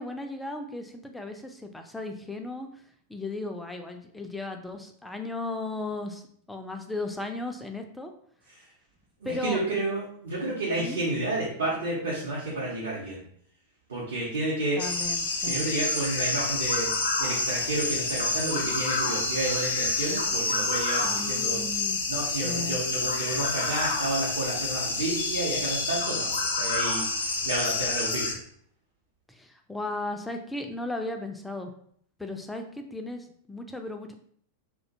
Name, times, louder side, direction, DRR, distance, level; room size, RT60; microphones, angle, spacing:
voice 1, 0.0-2.7 3.1-8.1 9.2-9.6 10.8-11.0 14.8-15.7 21.0-22.0 22.4-22.8 29.3-31.7 32.2-34.1, left 2 dB, 5° left, 5 dB, 0.3 m, -36 dB
voice 2, 9.2-13.2 13.9-14.8 15.5-16.9 17.2-21.6 22.1-28.4, right 2 dB, 65° right, -6 dB, 0.7 m, -31 dB
sound 1, 14.8-28.3, left 3 dB, 65° left, 0.5 m, -28 dB
2.3 x 2.1 x 2.7 m, 0.63 s
figure-of-eight pair, 90°, 0 cm